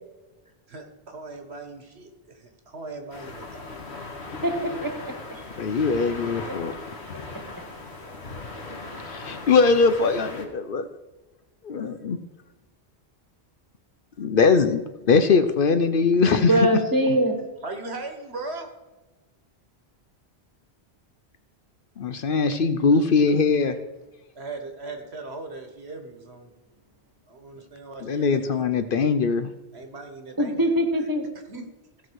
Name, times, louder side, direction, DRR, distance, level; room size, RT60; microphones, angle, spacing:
voice 1, 0.7-4.1 5.3-5.5 17.6-18.7 24.3-26.5 27.3-28.6 29.7-30.7 31.5-31.6, right 3 dB, 75° right, 5 dB, 1.7 m, -39 dB
sound 1, 3.1-10.4, left 3 dB, 75° left, 1.8 m, -38 dB
voice 2, 4.8-5.1 16.2-17.4 30.4-31.2, right 1 dB, 20° right, 5 dB, 1.4 m, -22 dB
voice 3, 5.6-6.7 9.1-10.9 11.6-12.2 14.2-14.8 15.1-16.7 22.0-23.8 28.0-29.5, left 4 dB, 60° left, 9 dB, 0.8 m, -21 dB
16.0 x 6.2 x 4.7 m, 1.1 s
omnidirectional pair, 1.1 m